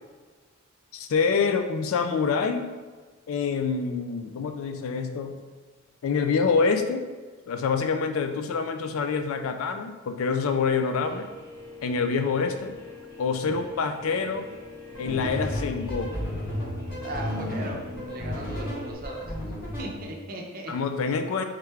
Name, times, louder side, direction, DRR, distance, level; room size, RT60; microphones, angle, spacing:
voice 1, 0.9-2.7 3.3-5.4 6.0-7.0 7.5-11.3 11.8-12.7 13.2-14.5 15.0-16.1 20.7-21.4, left 5 dB, 75° left, 8 dB, 0.4 m, -26 dB
Guitar, 11.0-18.9, left 2 dB, 15° left, 0.6 m, -43 dB
sound 1, 14.9-20.0, equal, 45° left, 1.4 m, -33 dB
voice 2, 17.0-17.8 18.1-19.3 19.8-20.7, equal, 45° right, 1 dB, 0.5 m, -37 dB
3.5 x 3.3 x 3.3 m, 1.4 s
head